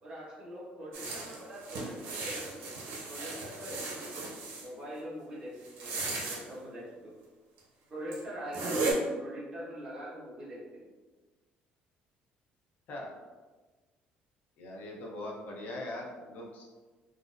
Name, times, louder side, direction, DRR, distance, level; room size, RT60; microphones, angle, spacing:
voice 1, 0.0-2.7 3.0-4.1 4.6-7.1 7.9-10.8, equal, 25° right, -8 dB, 1.3 m, -43 dB
sound 1, 0.9-4.7 5.6-6.4 7.6-7.7 8.1-8.2 8.5-8.9, right 3 dB, 80° right, 0.8 m, -36 dB
voice 2, 14.6-16.6, left 1 dB, 60° left, -1 dB, 0.7 m, -41 dB
3.9 x 2.0 x 2.5 m, 1.3 s
cardioid pair, 140°, 3 cm